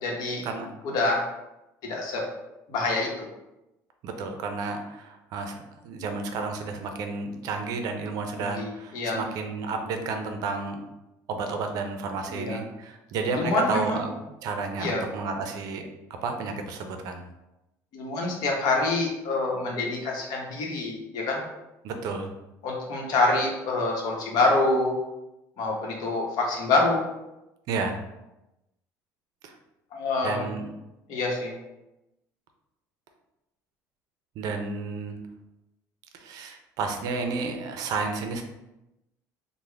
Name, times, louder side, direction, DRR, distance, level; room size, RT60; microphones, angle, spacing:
voice 1, 0.0-0.4 0.9-1.2 1.8-2.2 2.7-3.3 8.4-9.2 12.3-12.6 13.3-14.0 14.8-15.0 17.9-21.4 22.6-25.0 25.6-27.0 29.9-30.5 31.1-31.5, left 2 dB, 65° left, -1 dB, 0.9 m, -26 dB
voice 2, 4.0-10.8 11.3-14.1 14.4-15.9 16.2-17.2 21.8-22.3 27.7-28.0 29.4-29.6 30.2-30.7 34.4-35.2 36.2-38.4, right 4 dB, 60° right, 5 dB, 0.5 m, -31 dB
3.5 x 2.1 x 3.2 m, 0.94 s
cardioid pair, 125°, 7 cm